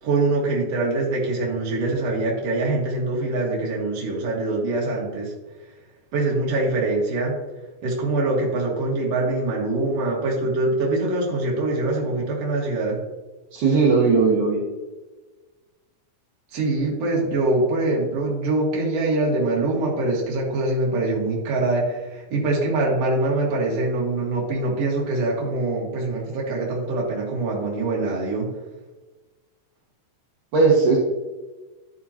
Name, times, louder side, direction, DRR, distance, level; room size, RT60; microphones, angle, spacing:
voice 1, 0.0-5.3 6.1-7.4 7.8-13.0 16.5-28.5, right 2 dB, 50° right, -3 dB, 2.7 m, -24 dB
voice 2, 13.5-14.6 30.5-31.0, right 4 dB, 70° right, -3 dB, 2.7 m, -17 dB
12.0 x 5.6 x 2.9 m, 1.2 s
omnidirectional pair, 3.9 m